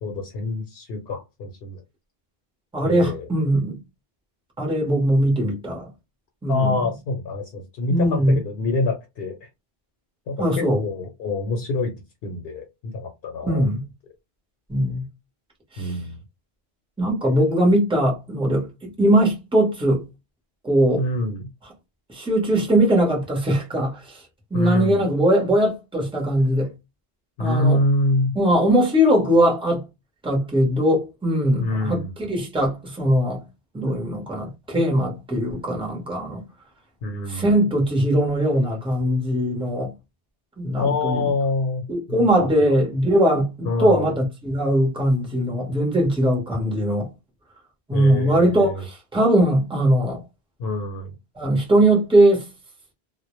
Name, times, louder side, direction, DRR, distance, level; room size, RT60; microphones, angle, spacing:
voice 1, 0.0-1.8 2.8-3.3 6.5-9.4 10.3-10.4 10.8-11.9 12.2-13.6 15.8-16.2 21.0-21.5 24.5-25.0 27.4-28.3 31.6-32.1 37.0-37.5 40.8-41.8 42.1-42.7 43.6-44.2 47.9-48.8 50.6-51.1, left 2 dB, 70° left, 0.8 m, -26 dB
voice 2, 2.7-3.8 4.6-5.9 6.4-6.8 7.9-8.3 8.6-8.7 10.4-10.8 13.4-13.8 14.7-15.1 15.7-15.9 17.0-20.0 20.6-21.0 22.1-24.2 24.5-26.7 27.4-27.8 28.3-29.8 30.2-33.4 33.7-36.4 37.3-39.9 40.6-41.3 41.9-47.1 47.9-50.2 51.4-52.5, right 1 dB, 5° right, 0.7 m, -20 dB
2.1 x 2.0 x 2.9 m
omnidirectional pair, 1.1 m